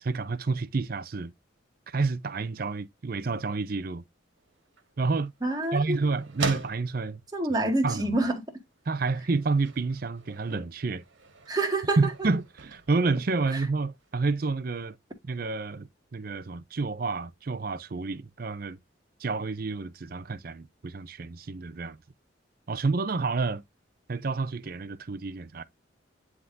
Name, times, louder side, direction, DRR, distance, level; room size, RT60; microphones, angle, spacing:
voice 1, 0.0-1.3 1.9-4.0 5.0-5.3 5.7-7.2 7.8-8.2 8.9-11.0 12.0-15.0 15.2-18.8 19.2-22.0 22.7-23.6 24.1-25.6, right 3 dB, 50° right, 0.5 m, -29 dB
sound 1, 4.4-14.1, right 3 dB, 80° right, 1.6 m, -41 dB
voice 2, 5.4-6.0 7.3-8.4 11.5-12.0, right 2 dB, 20° right, 1.7 m, -26 dB
10.0 x 3.6 x 2.6 m
head